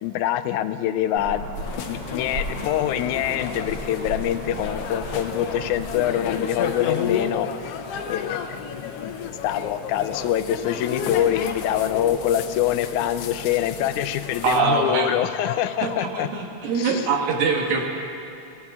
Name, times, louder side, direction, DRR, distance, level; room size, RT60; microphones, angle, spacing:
voice 1, 0.0-7.7 8.1-9.1 9.4-16.3 16.8-17.1, left 11 dB, 85° left, 12 dB, 2.0 m, -25 dB
sound 1, 1.1-6.3, right 1 dB, 50° right, 1.5 m, -35 dB
sound 2, 1.6-14.6, left 7 dB, 70° left, 1.6 m, -32 dB
voice 2, 14.4-15.2 15.8-17.9, right 5 dB, 75° right, 1 dB, 2.9 m, -23 dB
22.5 x 16.0 x 3.6 m, 2.6 s
omnidirectional pair, 3.3 m